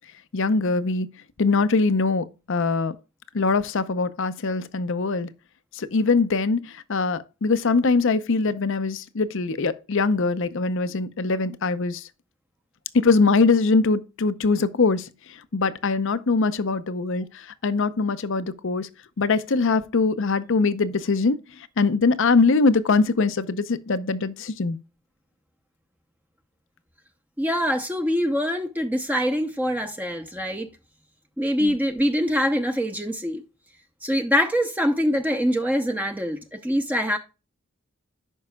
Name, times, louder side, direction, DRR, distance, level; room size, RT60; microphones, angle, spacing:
voice 1, 0.3-1.1 1.4-3.0 3.3-5.3 5.7-12.1 12.9-15.1 15.5-18.9 19.2-21.4 21.8-24.8 31.6-31.8, left 4 dB, 60° left, 0.6 m, -22 dB
voice 2, 27.4-30.7 31.4-33.4 34.0-37.2, equal, 10° right, 0.6 m, -24 dB
11.5 x 5.4 x 2.2 m
head